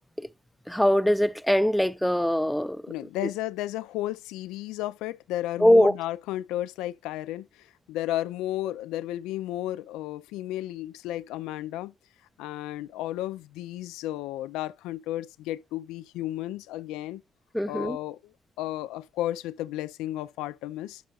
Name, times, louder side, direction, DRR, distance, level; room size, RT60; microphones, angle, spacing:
voice 1, 0.7-2.9 3.2-3.3 5.6-5.9 17.5-18.0, equal, 5° left, 0.6 m, -22 dB
voice 2, 2.9-11.9 12.4-17.2 17.7-18.2 18.6-21.0, left 14 dB, 80° left, 0.4 m, -33 dB
10.5 x 6.1 x 2.4 m
supercardioid pair, 55°, 0 cm